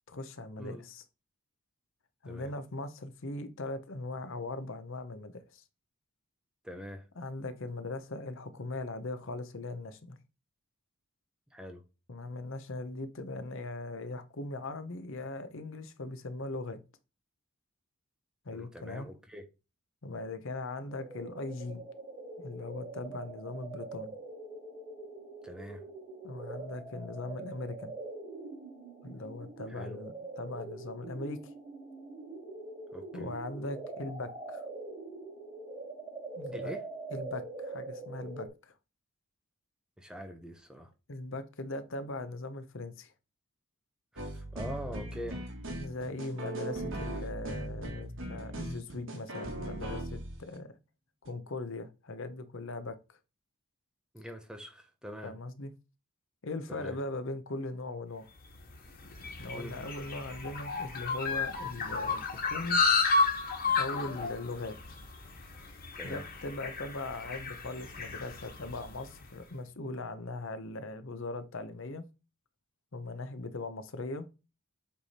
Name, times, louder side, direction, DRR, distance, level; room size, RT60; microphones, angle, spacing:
voice 1, 0.1-1.0 2.2-5.6 7.2-10.2 12.1-16.8 18.4-19.1 20.0-21.8 22.4-24.1 26.2-27.9 29.0-31.5 33.1-34.6 36.4-36.7 37.1-38.7 41.1-43.1 45.8-50.7 51.2-53.2 55.2-55.7 56.4-58.3 59.4-62.8 63.6-64.8 66.0-72.0 72.9-74.3, left 2 dB, 60° left, 0.8 m, -39 dB
voice 2, 6.6-7.0 11.5-11.8 18.5-19.4 25.4-25.8 29.7-30.0 32.9-33.3 36.5-36.8 40.0-40.9 44.1-45.4 54.1-55.3 56.7-57.0 59.5-59.8 66.0-66.2, equal, 5° right, 0.8 m, -44 dB
sound 1, 20.9-38.5, right 3 dB, 20° right, 3.4 m, -44 dB
sound 2, 44.2-50.5 51.2-51.3, right 1 dB, 60° right, 1.8 m, -38 dB
sound 3, 58.5-69.1, left 4 dB, 40° left, 1.7 m, -32 dB
8.2 x 3.4 x 4.2 m
head